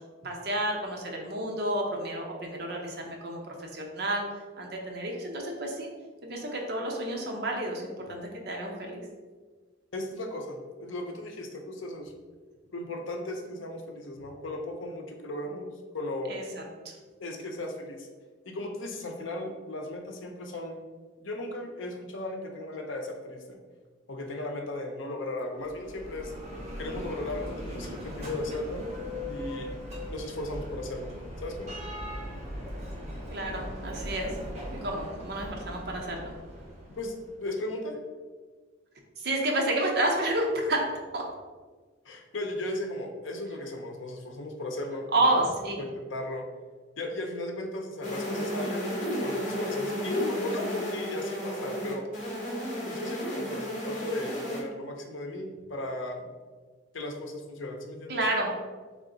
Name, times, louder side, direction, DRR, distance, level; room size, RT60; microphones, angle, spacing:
voice 1, 0.2-4.2 4.6-5.9 6.2-9.0 16.3-16.9 33.3-34.4 34.8-36.3 39.2-40.8 41.1-41.2 45.1-45.8 58.1-58.5, right 1 dB, 55° right, 0 dB, 0.8 m, -30 dB
voice 2, 9.9-12.1 12.7-16.3 17.2-18.1 18.4-20.9 21.2-23.6 24.1-26.3 26.8-28.9 29.3-29.8 30.1-31.1 31.4-31.7 37.0-38.0 42.1-45.1 45.8-46.5 47.0-52.1 52.9-56.3 56.9-58.2, left 1 dB, 75° left, 3 dB, 0.7 m, -36 dB
Bell, 25.5-37.4, equal, 35° right, 1.0 m, -39 dB
sound 1, 48.0-54.6, equal, 40° left, 1.2 m, -33 dB
3.6 x 3.6 x 3.8 m, 1.4 s
head